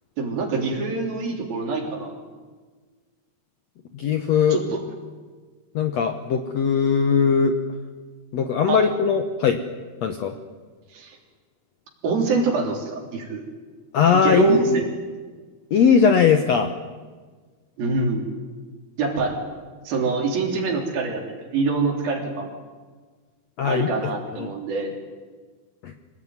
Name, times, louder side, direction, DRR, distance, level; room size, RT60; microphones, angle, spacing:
voice 1, 0.2-2.2 4.5-4.8 8.7-8.8 10.9-11.2 12.0-13.4 14.1-14.8 17.8-18.3 19.0-19.4 19.9-22.5 23.6-24.9, right 4 dB, 70° right, 1 dB, 5.1 m, -25 dB
voice 2, 3.9-4.6 5.8-7.5 8.3-9.6 10.0-10.3 13.9-14.8 15.7-16.7 23.6-23.9 24.4-24.5 25.8-25.9, left 6 dB, 65° left, 7 dB, 1.7 m, -19 dB
25.0 x 18.5 x 9.6 m, 1.4 s
omnidirectional pair, 4.4 m